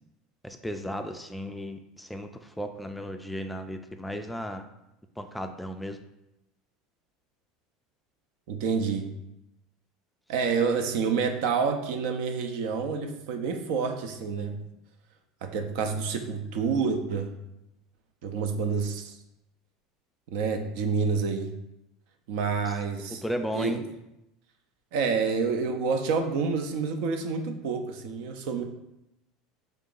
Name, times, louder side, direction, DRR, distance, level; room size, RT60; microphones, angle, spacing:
voice 1, 0.4-4.6 5.2-6.0 22.6-22.7 23.2-23.8, equal, 5° left, 7 dB, 0.3 m, -35 dB
voice 2, 8.5-9.1 10.3-14.6 15.4-17.3 18.2-19.2 20.3-21.5 22.3-23.2 23.5-23.8 24.9-28.6, right 5 dB, 70° right, 6 dB, 0.5 m, -28 dB
3.5 x 2.8 x 3.8 m, 0.88 s
supercardioid pair, 95°, 0 cm